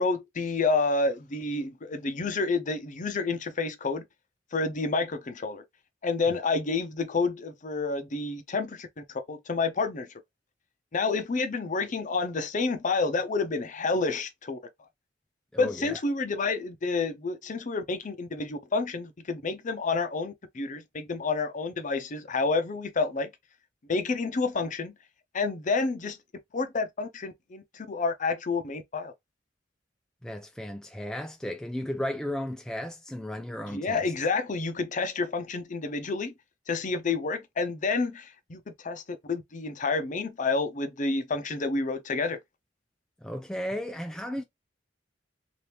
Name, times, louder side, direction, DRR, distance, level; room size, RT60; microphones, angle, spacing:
voice 1, 0.0-4.0 4.5-5.6 6.0-10.1 10.9-14.6 15.6-23.3 23.9-24.9 25.3-26.2 26.5-29.1 33.7-36.3 36.7-42.4, left 3 dB, 45° left, 0.6 m, -29 dB
voice 2, 15.5-16.0 30.2-34.1 43.2-44.4, left 1 dB, 5° left, 0.3 m, -34 dB
2.9 x 2.5 x 3.3 m
head